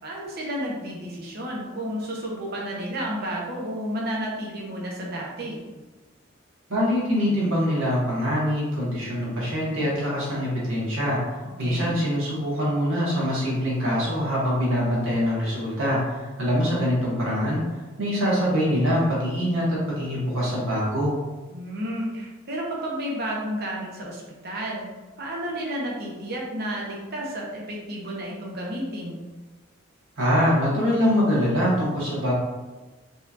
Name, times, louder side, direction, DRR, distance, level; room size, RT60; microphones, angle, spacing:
voice 1, 0.0-5.6 11.6-11.9 21.5-29.2, equal, 50° right, -3 dB, 0.8 m, -32 dB
voice 2, 6.7-11.2 11.6-17.6 18.0-21.2 30.2-32.3, equal, 75° right, -6 dB, 1.4 m, -24 dB
4.0 x 2.8 x 2.5 m, 1.2 s
head